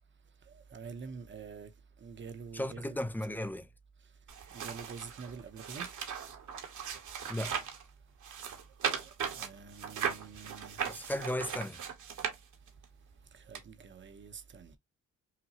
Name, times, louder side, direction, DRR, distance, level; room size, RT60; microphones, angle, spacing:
voice 1, 0.5-1.7 2.0-3.0 3.3-3.4 4.5-5.9 9.1-10.8 13.3-14.8, right 5 dB, 35° right, 0.8 m, -46 dB
voice 2, 2.5-3.7 7.3-7.6 10.9-11.8, left 1 dB, 5° left, 0.3 m, -35 dB
sound 1, 4.3-7.8 8.2-12.8 13.5-13.6, right 7 dB, 60° right, 1.3 m, -38 dB
5.8 x 2.2 x 2.8 m
cardioid pair, 110°, 33 cm